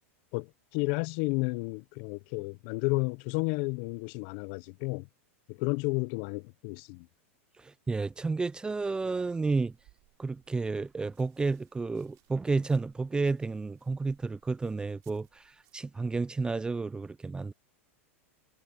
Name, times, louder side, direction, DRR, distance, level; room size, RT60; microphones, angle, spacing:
voice 1, 0.3-5.1 5.5-7.1, left 28 dB, 55° left, 1.0 m, -32 dB
voice 2, 7.6-9.7 10.2-17.5, right 3 dB, 10° right, 0.6 m, -31 dB
sound 1, 8.4-15.8, right 19 dB, 45° right, 5.7 m, -63 dB
hypercardioid pair, 110°, 7 cm